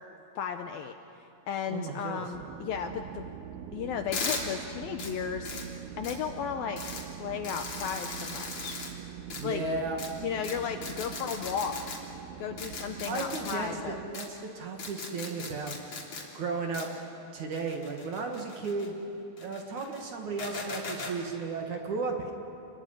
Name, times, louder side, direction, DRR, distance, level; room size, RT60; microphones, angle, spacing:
voice 1, 0.4-0.9 1.5-3.3 3.7-5.5 6.0-6.8 7.2-8.8 9.4-9.6 10.2-11.8 12.4-14.0, left 8 dB, 75° left, 7 dB, 2.3 m, -34 dB
voice 2, 1.7-2.2 9.4-10.0 13.1-13.7 14.1-15.7 16.3-16.9 17.3-19.0 19.4-22.3, right 4 dB, 50° right, 3 dB, 2.8 m, -34 dB
sound 1, 2.3-14.1, right 9 dB, 70° right, 2.5 m, -43 dB
sound 2, 4.1-4.4 5.0-5.1 5.4-5.6 6.0-6.1 6.8-7.0 7.4-8.9 9.3-9.4 10.0-10.1 10.4-10.5 10.8-12.0 12.6-13.5 14.1-14.2 14.8-16.2 16.7-16.8 17.5-18.9 19.4-20.0 20.4-21.1, left 4 dB, 40° left, 4.1 m, -38 dB
28.0 x 21.5 x 9.9 m, 2.8 s
omnidirectional pair, 5.0 m